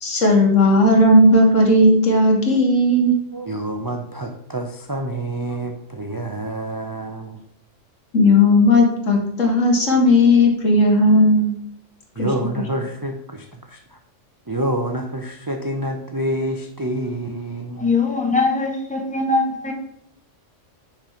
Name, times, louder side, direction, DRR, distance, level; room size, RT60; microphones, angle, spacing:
voice 1, 0.0-3.2 8.1-11.5 12.2-12.3, left 1 dB, 75° left, 1 dB, 2.0 m, -15 dB
voice 2, 3.3-7.4 12.2-14.0 14.5-17.9, right 1 dB, 25° right, 4 dB, 0.4 m, -27 dB
voice 3, 17.8-19.7, left 3 dB, 5° left, 1 dB, 1.2 m, -21 dB
6.0 x 5.3 x 5.6 m, 0.72 s
omnidirectional pair, 1.3 m